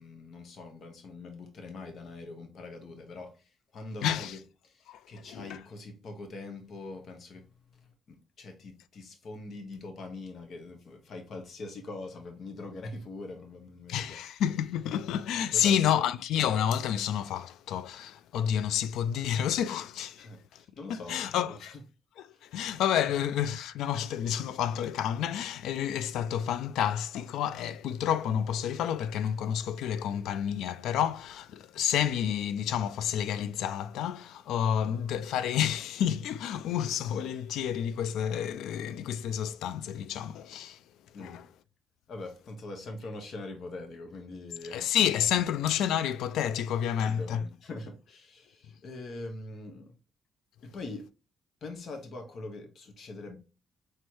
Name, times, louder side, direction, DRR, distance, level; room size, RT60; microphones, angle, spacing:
voice 1, 0.0-14.2 15.5-16.0 20.2-21.8 22.3-22.4 23.1-23.2 34.8-35.0 41.1-41.4 42.1-44.9 47.0-50.0 50.6-51.1 51.6-53.4, left 2 dB, 60° left, 1.2 m, -43 dB
voice 2, 4.0-4.4 4.9-5.0 5.3-5.6 13.9-20.6 20.9-21.7 22.2-40.8 41.2-41.5 44.7-47.5, left 9 dB, 85° left, 0.3 m, -30 dB
4.5 x 3.2 x 3.0 m
cardioid pair, 90°, 0 cm